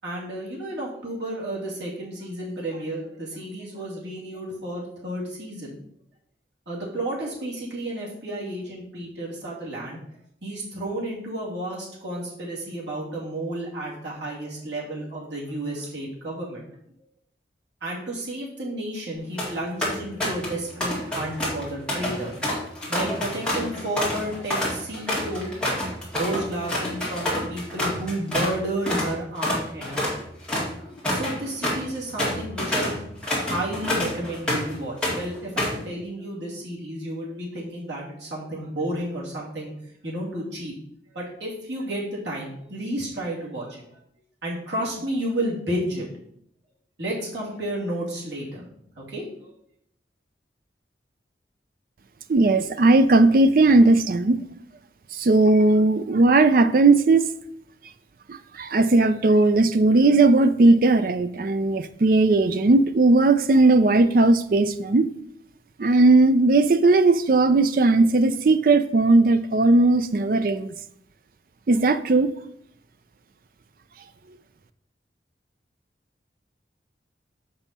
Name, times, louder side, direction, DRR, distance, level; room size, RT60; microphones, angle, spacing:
voice 1, 0.0-5.8 6.7-10.0 10.4-16.7 17.8-22.4 22.9-25.5 25.8-30.3 31.1-32.9 33.3-39.7 40.0-40.7 41.1-44.0 44.4-46.1 47.0-48.7 49.1-49.5, right 1 dB, 80° right, 2.6 m, -32 dB
sound 1, 19.2-19.5 19.8-20.5 20.8-28.6 28.9-29.1 29.4-34.7 35.0-35.8, left 1 dB, 5° left, 2.0 m, -27 dB
voice 2, 52.3-54.4 55.1-57.2 58.3-65.1 65.8-70.7 71.7-72.3, right 2 dB, 50° right, 0.4 m, -18 dB
7.0 x 5.4 x 4.2 m
head